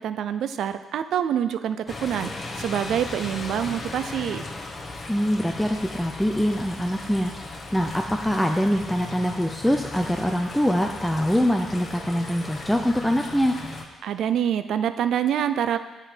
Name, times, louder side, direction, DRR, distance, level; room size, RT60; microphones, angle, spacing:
voice 1, 0.0-4.4 14.0-15.8, right 9 dB, 75° right, 11 dB, 0.3 m, -26 dB
sound 1, 1.9-13.8, left 2 dB, 35° left, 1.0 m, -37 dB
voice 2, 5.1-7.3 7.7-13.6, equal, 5° left, 3 dB, 0.4 m, -24 dB
7.1 x 4.5 x 4.9 m, 1.2 s
cardioid pair, 90°, 0 cm